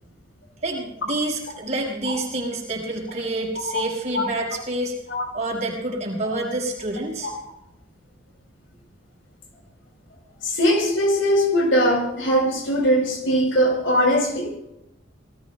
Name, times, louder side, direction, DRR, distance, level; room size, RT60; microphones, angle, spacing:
voice 1, 0.6-4.9 5.3-7.3, right 2 dB, 35° right, -1 dB, 5.2 m, -28 dB
voice 2, 10.4-14.6, equal, 75° left, 1 dB, 5.2 m, -20 dB
27.0 x 18.5 x 2.2 m, 0.88 s
head